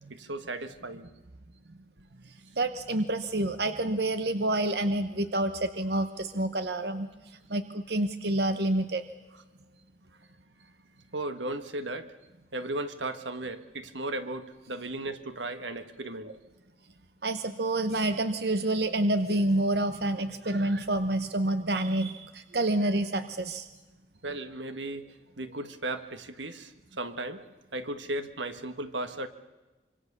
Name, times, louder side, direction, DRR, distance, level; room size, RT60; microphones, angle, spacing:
voice 1, 0.1-1.1 11.1-12.1 12.5-16.3 24.2-27.5 27.7-29.3, right 2 dB, 90° right, 9 dB, 1.7 m, -36 dB
voice 2, 2.6-7.1 7.5-9.0 17.2-23.7, right 1 dB, 60° right, 10 dB, 1.0 m, -28 dB
25.5 x 25.0 x 6.9 m, 1.2 s
head